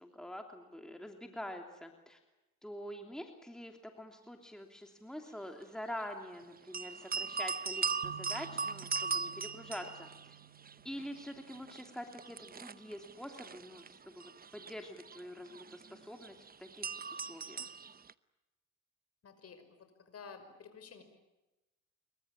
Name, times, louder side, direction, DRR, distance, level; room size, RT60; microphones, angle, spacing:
voice 1, 0.0-2.2 2.6-10.4 10.8-17.6, equal, ahead, 4 dB, 3.0 m, -46 dB
sound 1, 6.7-10.7 11.0-18.1, right 5 dB, 30° right, 0.8 m, -39 dB
sound 2, 8.0-12.0, right 13 dB, 75° right, 1.6 m, -54 dB
voice 2, 19.2-19.8 20.1-21.0, left 5 dB, 55° left, 8 dB, 5.7 m, -51 dB
25.5 x 23.0 x 8.9 m, 1.0 s
cardioid pair, 90°, 30 cm